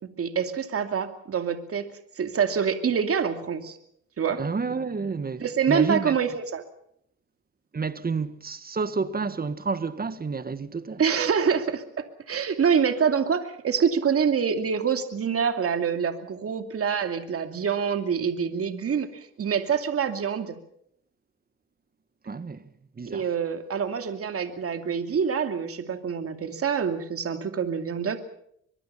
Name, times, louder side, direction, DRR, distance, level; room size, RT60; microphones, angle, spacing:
voice 1, 0.0-1.9 2.2-3.8 4.2-4.4 5.4-6.6 11.0-20.6 23.1-28.2, right 7 dB, 50° right, 2.6 m, -26 dB
voice 2, 4.4-6.2 7.7-11.0 22.2-22.7 22.9-23.3, right 4 dB, 30° right, 1.7 m, -30 dB
23.5 x 23.0 x 5.8 m
cardioid pair, 90°, 30 cm